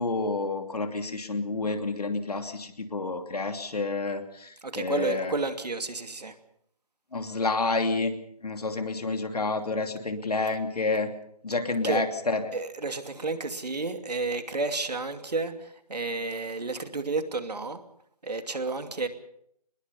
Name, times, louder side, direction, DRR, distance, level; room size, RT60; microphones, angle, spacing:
voice 1, 0.0-5.3 7.1-8.1 8.4-11.1 11.4-12.5, left 3 dB, 70° left, 6 dB, 2.8 m, -29 dB
voice 2, 4.6-6.3 11.8-12.0 12.5-17.8 18.2-19.1, right 3 dB, 80° right, 8 dB, 2.7 m, -31 dB
23.5 x 20.5 x 5.5 m, 0.71 s
figure-of-eight pair, 175°, 21 cm